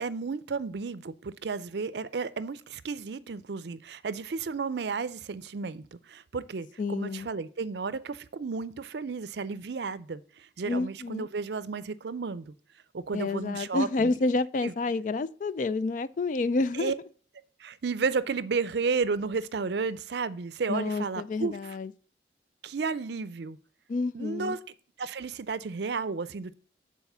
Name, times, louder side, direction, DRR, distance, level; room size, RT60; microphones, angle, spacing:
voice 1, 0.0-12.5 12.9-13.9 14.6-14.7 16.7-16.9 17.6-21.6 22.6-23.6 24.1-24.6 25.0-26.5, right 4 dB, 65° right, 0.5 m, -32 dB
voice 2, 6.8-7.3 10.7-11.3 13.1-16.9 20.7-21.9 23.9-24.6, left 3 dB, 45° left, 0.3 m, -29 dB
7.2 x 4.2 x 6.7 m
head